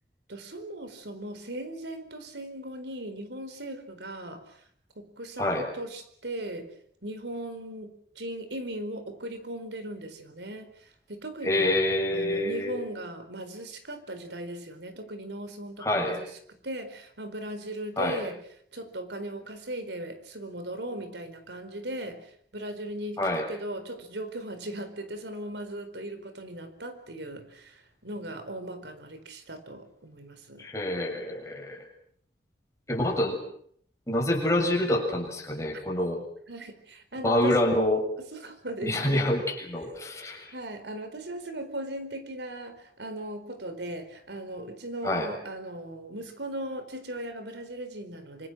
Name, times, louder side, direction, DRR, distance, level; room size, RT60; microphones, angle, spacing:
voice 1, 0.3-4.6 5.0-6.7 7.0-11.7 12.1-16.4 16.6-18.4 18.7-30.7 35.9-36.0 36.5-37.7 38.3-39.4 40.5-48.5, right 1 dB, 85° right, 9 dB, 4.5 m, -38 dB
voice 2, 11.4-12.8 15.8-16.2 18.0-18.2 23.2-23.4 30.6-31.8 32.9-33.4 34.1-36.2 37.2-38.1 38.8-40.5 45.0-45.3, left 1 dB, 15° left, 0 dB, 7.1 m, -27 dB
27.5 x 26.5 x 6.5 m, 0.64 s
head